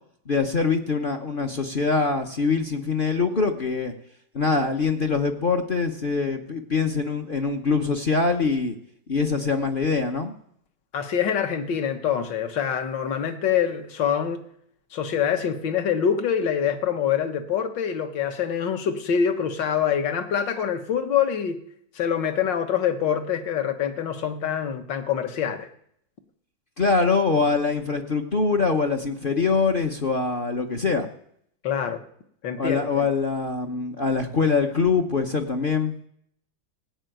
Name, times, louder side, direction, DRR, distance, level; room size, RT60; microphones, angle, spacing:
voice 1, 0.3-3.9 4.3-8.7 9.1-10.3 26.8-31.1 32.6-35.9, left 4 dB, 45° left, 4 dB, 0.7 m, -23 dB
voice 2, 10.9-14.4 14.9-21.6 22.0-25.7 31.6-32.0 32.4-33.1, left 8 dB, 65° left, 7 dB, 1.9 m, -25 dB
16.0 x 6.9 x 9.2 m, 0.69 s
omnidirectional pair, 2.2 m